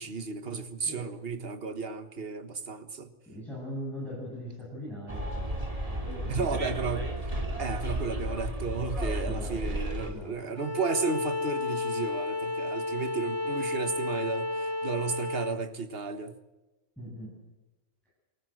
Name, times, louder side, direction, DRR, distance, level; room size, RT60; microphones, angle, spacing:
voice 1, 0.0-3.1 6.3-7.1 7.6-16.4, right 4 dB, 50° right, 1.6 m, -33 dB
voice 2, 3.3-5.5 5.9-6.8 9.2-10.5 17.0-17.5, equal, ahead, 8.0 m, -41 dB
Bus, 5.1-10.1, right 1 dB, 25° right, 3.1 m, -33 dB
Bowed string instrument, 10.5-15.6, left 2 dB, 25° left, 1.2 m, -32 dB
23.5 x 15.0 x 7.9 m
omnidirectional pair, 1.3 m